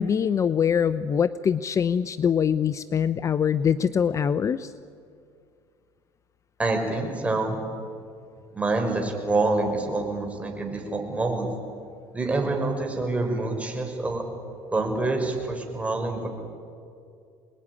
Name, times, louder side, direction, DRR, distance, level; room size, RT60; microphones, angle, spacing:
voice 1, 0.0-4.7, left 7 dB, 35° left, 15 dB, 0.7 m, -23 dB
voice 2, 6.6-7.6 8.5-11.5 12.1-14.2 14.7-16.3, right 2 dB, 15° right, 3 dB, 6.0 m, -26 dB
27.0 x 20.5 x 9.9 m, 2.4 s
supercardioid pair, 100°, 9 cm